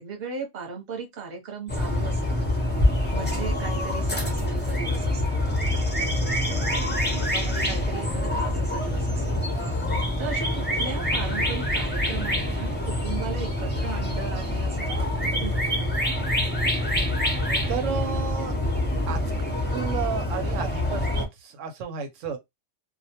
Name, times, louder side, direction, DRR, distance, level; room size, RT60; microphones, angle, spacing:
voice 1, 0.0-2.5 3.1-9.5 10.2-15.8, right 5 dB, 40° right, 0.8 m, -37 dB
sound 1, 1.7-21.3, left 1 dB, 15° left, 0.4 m, -26 dB
voice 2, 17.7-18.6 19.1-19.2 19.7-22.4, right 7 dB, 85° right, 0.9 m, -32 dB
2.3 x 2.1 x 2.8 m
omnidirectional pair, 1.3 m